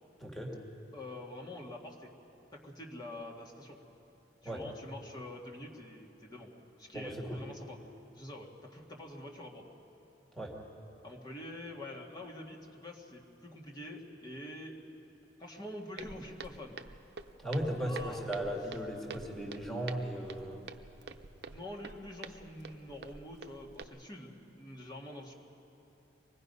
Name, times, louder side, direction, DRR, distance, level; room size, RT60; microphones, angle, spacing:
voice 1, 0.2-0.6 4.4-4.6 6.9-7.4 10.3-10.5 17.4-20.6, equal, ahead, -1 dB, 2.1 m, -36 dB
voice 2, 0.9-2.1 2.5-3.8 4.4-6.5 6.8-7.8 8.1-9.7 11.0-14.8 15.4-16.8 17.8-18.3 21.5-25.3, left 1 dB, 25° left, -1 dB, 1.9 m, -46 dB
Walk footsteps, 16.0-23.8, right 5 dB, 65° right, 0.7 m, -48 dB
25.0 x 19.5 x 5.5 m, 3.0 s
head